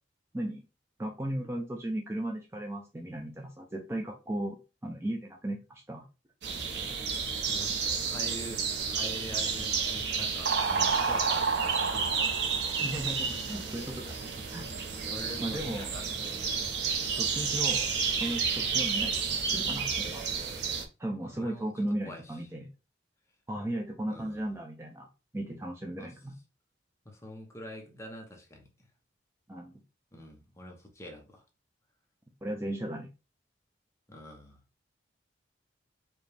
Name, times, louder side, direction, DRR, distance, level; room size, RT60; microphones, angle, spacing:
voice 1, 1.0-6.0 12.8-14.2 14.5-14.6 15.4-15.9 17.2-17.9 18.2-20.2 21.0-22.7 23.5-25.1 25.3-26.3 29.5-29.8 32.4-33.1, right 1 dB, 15° right, 0.5 m, -36 dB
sound 1, 6.4-20.8, right 5 dB, 60° right, 0.8 m, -30 dB
voice 2, 7.4-7.7 8.0-8.6 8.9-11.5 11.8-12.9 13.3-13.6 15.1-16.5 21.2-21.7 22.0-22.4 24.1-24.5 26.0-26.2 27.0-28.7 30.1-31.4 34.1-34.6, equal, 15° left, 0.8 m, -45 dB
4.9 x 2.3 x 3.3 m
head